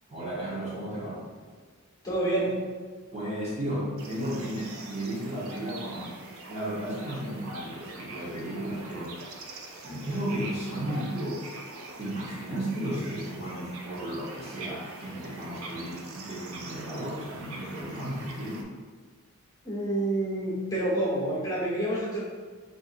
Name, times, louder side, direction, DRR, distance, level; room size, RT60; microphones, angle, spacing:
voice 1, 0.1-1.2 3.1-6.2 6.5-9.2 9.8-11.4 12.0-18.7, right 1 dB, 30° right, -8 dB, 0.9 m, -34 dB
voice 2, 2.0-2.5 19.6-22.2, right 1 dB, 15° left, -8 dB, 1.1 m, -28 dB
sound 1, 4.0-18.6, right 2 dB, 70° right, 0.5 m, -43 dB
5.2 x 2.6 x 2.5 m, 1.5 s
head